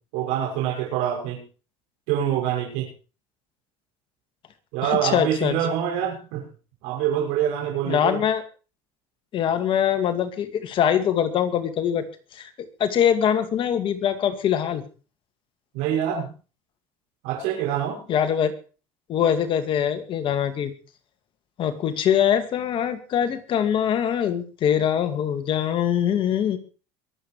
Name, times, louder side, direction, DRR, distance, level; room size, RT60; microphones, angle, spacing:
voice 1, 0.1-1.4 2.1-2.9 4.7-6.4 6.8-8.2 15.7-16.3 17.2-18.0, right 9 dB, 80° right, -1 dB, 6.5 m, -25 dB
voice 2, 4.8-5.5 7.9-8.4 9.3-12.0 12.3-12.5 12.8-14.8 18.1-18.5 19.1-20.7 21.6-26.6, left 9 dB, 50° left, 8 dB, 2.3 m, -23 dB
22.5 x 8.6 x 4.9 m, 0.37 s
supercardioid pair, 105°, 11 cm